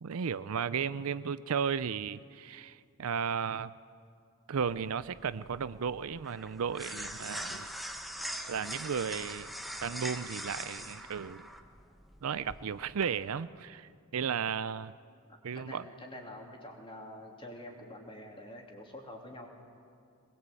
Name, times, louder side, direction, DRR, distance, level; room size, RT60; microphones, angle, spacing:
voice 1, 0.0-3.7 4.5-7.7 8.5-9.5 9.8-11.5 12.2-14.9 15.4-15.8, right 7 dB, 70° right, 16 dB, 0.5 m, -34 dB
sound 1, 4.6-13.0, equal, ahead, 1.1 m, -42 dB
voice 2, 15.3-19.5, left 1 dB, 25° left, 1 dB, 2.9 m, -47 dB
22.5 x 20.5 x 8.3 m, 2.3 s
head